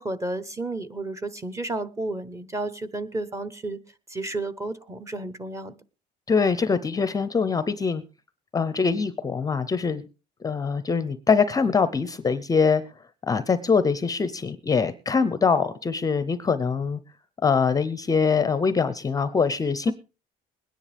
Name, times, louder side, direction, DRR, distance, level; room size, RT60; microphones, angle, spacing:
voice 1, 0.0-3.8 4.1-5.7 19.9-20.0, right 2 dB, 15° right, 0.9 m, -32 dB
voice 2, 6.3-8.0 8.5-10.0 10.4-12.8 13.3-17.0 17.4-19.9, left 5 dB, 20° left, 0.6 m, -23 dB
21.5 x 9.9 x 3.4 m
cardioid pair, 135°, 18 cm